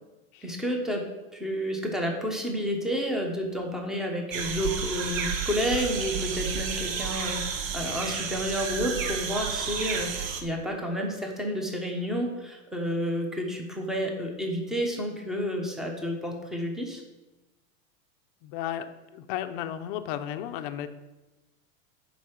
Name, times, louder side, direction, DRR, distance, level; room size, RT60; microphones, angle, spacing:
voice 1, 0.4-1.0 1.3-17.0, equal, ahead, 2 dB, 0.8 m, -30 dB
sound 1, 4.3-10.4, right 6 dB, 70° right, 1.3 m, -31 dB
voice 2, 18.4-20.9, left 11 dB, 40° left, 9 dB, 0.7 m, -34 dB
10.5 x 4.7 x 6.5 m, 1.1 s
supercardioid pair, 170°, 41 cm